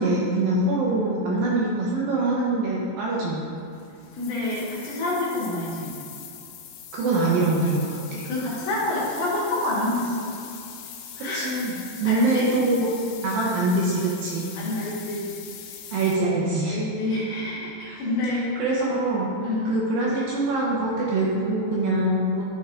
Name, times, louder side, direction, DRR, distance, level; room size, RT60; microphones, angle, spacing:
voice 1, 0.0-3.5 6.9-8.3 11.3-14.5 15.9-16.8 17.8-18.0 18.6-19.3 19.7-22.4, right 2 dB, 75° right, -5 dB, 2.1 m, -24 dB
sound 1, 3.7-16.2, left 8 dB, 85° left, 3.0 m, -42 dB
voice 2, 4.1-5.9 8.2-10.3 11.1-11.4 12.1-12.5 14.5-15.3 16.7-18.6 19.4-19.8, left 2 dB, 55° left, -7 dB, 2.8 m, -28 dB
12.0 x 4.7 x 3.8 m, 2.6 s
omnidirectional pair, 5.2 m